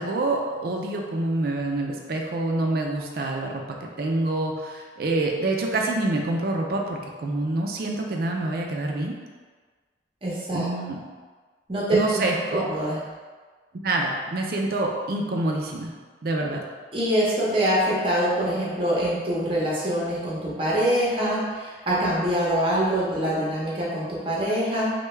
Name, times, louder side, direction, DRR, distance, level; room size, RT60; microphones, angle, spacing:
voice 1, 0.0-3.6 4.0-9.1 10.5-11.0 11.9-12.6 13.8-15.9 16.2-16.6, right 2 dB, 55° right, 1 dB, 0.4 m, -26 dB
voice 2, 10.2-10.7 11.7-12.2 12.5-13.0 16.9-24.9, right 1 dB, 30° right, -6 dB, 0.7 m, -24 dB
3.3 x 2.2 x 3.1 m, 1.5 s
head